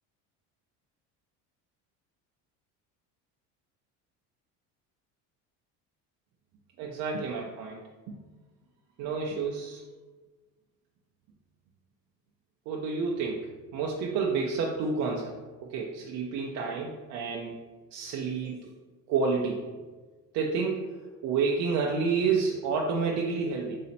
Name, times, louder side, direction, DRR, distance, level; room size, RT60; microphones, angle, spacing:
voice 1, 6.8-7.8 9.0-9.8 12.7-15.3 15.6-17.5 17.9-18.7 19.1-19.6 20.3-20.8 21.2-23.8, right 5 dB, 60° right, -1 dB, 0.6 m, -29 dB
4.2 x 2.8 x 4.1 m, 1.3 s
cardioid pair, 115°, 35 cm